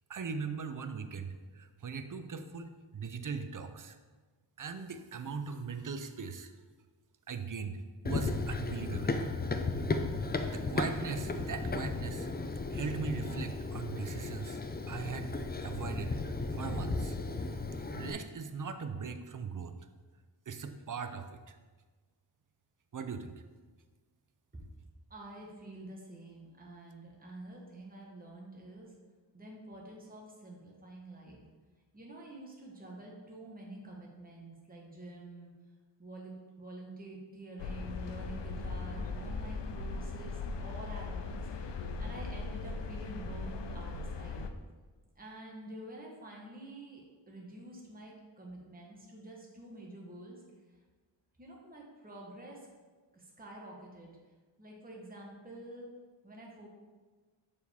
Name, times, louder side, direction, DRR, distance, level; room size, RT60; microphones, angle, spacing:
voice 1, 0.1-4.0 4.6-6.5 7.3-9.2 10.5-12.3 12.7-15.3 15.6-17.2 17.9-19.8 20.5-21.6 22.9-23.3, right 5 dB, 45° right, 9 dB, 0.5 m, -39 dB
Run, 8.1-18.1, left 3 dB, 25° left, 0.4 m, -35 dB
voice 2, 25.1-28.9 29.3-31.4 31.9-35.5 36.0-44.5 45.2-50.4 50.7-50.8 51.4-52.7 53.1-55.9 56.2-56.7, right 1 dB, 20° right, -2 dB, 1.1 m, -48 dB
sound 1, 37.6-44.5, left 3 dB, 70° left, 0.5 m, -39 dB
6.4 x 4.8 x 3.5 m, 1.4 s
wide cardioid pair, 70°, 45 cm